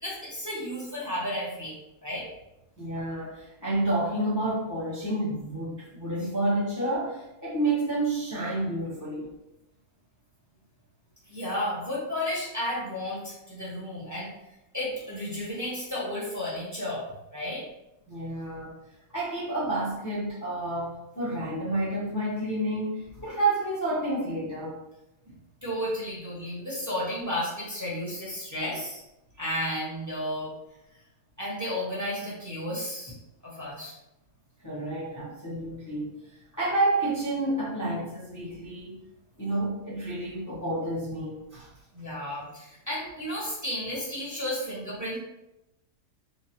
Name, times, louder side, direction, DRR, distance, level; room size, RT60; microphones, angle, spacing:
voice 1, 0.0-2.3 11.3-14.3 14.7-17.6 25.3-29.0 29.4-30.5 31.4-33.1 33.4-33.9 41.9-45.2, left 1 dB, 10° right, -7 dB, 0.9 m, -33 dB
voice 2, 2.8-9.3 18.1-18.7 19.1-24.8 34.6-36.2 36.5-39.0 39.4-41.7, right 2 dB, 25° left, -10 dB, 0.4 m, -29 dB
3.5 x 3.1 x 2.9 m, 0.89 s
omnidirectional pair, 1.9 m